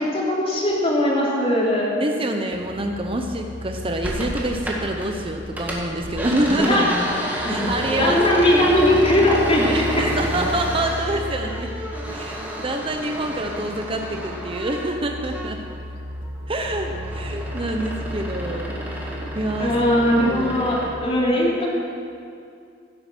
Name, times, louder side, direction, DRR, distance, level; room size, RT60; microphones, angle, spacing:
voice 1, 0.0-2.0 6.7-6.8 7.4-7.7 7.9-9.8 19.6-21.7, left 1 dB, 30° left, -4 dB, 2.9 m, -19 dB
voice 2, 2.0-6.9 7.5-8.2 9.6-11.7 12.1-15.6 16.5-19.7 20.3-20.6 21.3-21.5, right 1 dB, 30° right, 4 dB, 0.8 m, -26 dB
sound 1, 2.5-21.0, equal, 50° left, 1.6 m, -35 dB
sound 2, 4.0-5.1 5.4-15.8 16.1-20.9, equal, 10° right, 2.0 m, -31 dB
16.0 x 8.7 x 6.1 m, 2.4 s
head